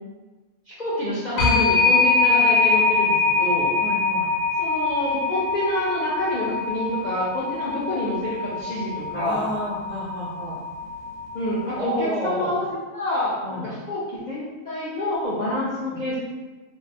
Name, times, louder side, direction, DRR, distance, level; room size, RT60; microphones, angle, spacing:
voice 1, 0.7-3.7 4.6-9.4 11.3-12.6 12.9-16.2, left 1 dB, 65° left, -9 dB, 0.4 m, -27 dB
sound 1, 1.4-12.0, left 4 dB, 85° left, 1.0 m, -23 dB
voice 2, 3.7-4.3 9.1-10.6 11.7-12.6 13.4-13.7 15.9-16.1, equal, 65° right, -8 dB, 0.4 m, -30 dB
2.6 x 2.1 x 2.7 m, 1.2 s
omnidirectional pair, 1.4 m